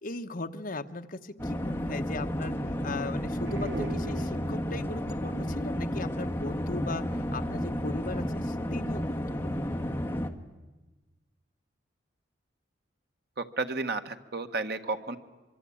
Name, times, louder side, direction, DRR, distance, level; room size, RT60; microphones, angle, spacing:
voice 1, 0.0-9.7, left 2 dB, 50° left, 6 dB, 1.1 m, -38 dB
sound 1, 1.4-10.3, equal, 15° left, 1.5 m, -32 dB
sound 2, 3.3-4.9, right 1 dB, 80° right, 1.1 m, -40 dB
voice 2, 13.4-15.2, right 3 dB, 60° right, 7 dB, 1.5 m, -32 dB
25.0 x 23.5 x 8.6 m, 1.2 s
head